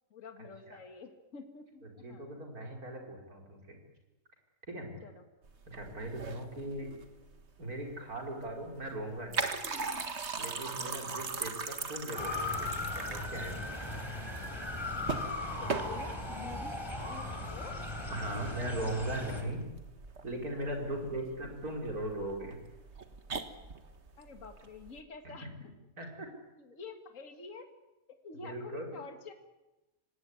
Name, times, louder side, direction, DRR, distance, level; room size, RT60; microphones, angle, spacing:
voice 1, 0.1-2.2 5.0-5.2 15.6-17.8 24.2-25.5 26.6-27.7 28.1-29.3, left 5 dB, 55° left, 6 dB, 2.2 m, -48 dB
voice 2, 1.8-3.8 4.7-4.9 5.7-6.9 7.6-9.5 10.4-13.7 18.1-19.6 20.2-22.6 25.2-25.5 26.0-26.3 28.3-29.0, right 1 dB, 75° right, 2 dB, 5.4 m, -39 dB
sound 1, 5.4-25.0, right 4 dB, 50° right, 1.8 m, -41 dB
Motor vehicle (road) / Siren, 12.2-19.4, left 2 dB, 15° left, 3.5 m, -38 dB
25.5 x 18.5 x 9.6 m, 1.0 s
omnidirectional pair, 1.6 m